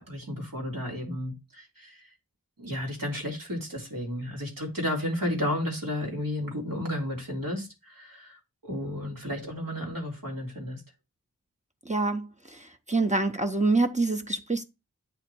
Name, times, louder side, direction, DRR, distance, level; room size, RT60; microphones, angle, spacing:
voice 1, 0.1-2.1 2.6-10.8, left 1 dB, 85° right, 2.3 m, -33 dB
voice 2, 11.9-14.6, right 3 dB, 20° right, 0.7 m, -26 dB
8.5 x 3.2 x 4.5 m
wide cardioid pair, 40°, 33 cm